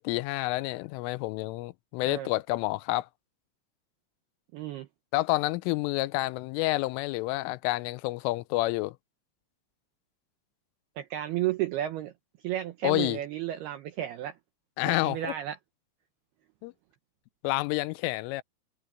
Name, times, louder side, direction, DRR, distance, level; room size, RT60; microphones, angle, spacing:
voice 1, 0.0-3.1 5.1-9.0 12.8-13.2 14.8-15.3 16.6-16.7 17.4-18.4, left 20 dB, 85° left, 3.1 m, -29 dB
voice 2, 4.5-4.9 11.0-12.1 12.4-14.4 14.9-15.6, right 13 dB, 85° right, 2.3 m, -32 dB
omnidirectional pair, 5.7 m